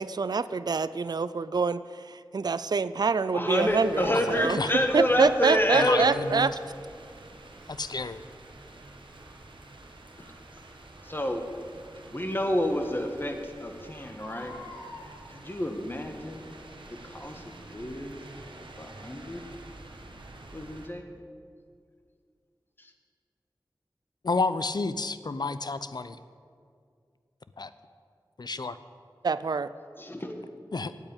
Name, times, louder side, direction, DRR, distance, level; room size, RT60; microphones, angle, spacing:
voice 1, 0.0-1.8 2.3-4.6 4.9-6.5 29.2-29.7, right 4 dB, 55° right, 15 dB, 0.3 m, -26 dB
voice 2, 3.3-6.1 11.0-11.4 12.1-14.6 15.3-16.5 17.0-18.2 18.8-19.5 20.5-21.0 22.8-22.9 30.0-30.5, left 1 dB, 25° left, 5 dB, 1.3 m, -28 dB
sound 1, 3.6-20.9, right 2 dB, 85° right, 1.2 m, -48 dB
voice 3, 4.1-4.7 5.7-6.6 7.7-8.2 24.2-26.2 27.6-27.7 28.4-28.8 30.7-30.9, left 3 dB, 60° left, 13 dB, 0.5 m, -31 dB
Crying sobbing, 7.6-7.7 10.2-10.4 12.0-12.1 12.6-12.7 12.9-13.0 14.0-15.1 16.1-16.4 17.0-17.1, left 2 dB, 80° left, 2.6 m, -46 dB
8.7 x 8.3 x 8.8 m, 2.2 s
wide cardioid pair, 50°, 8 cm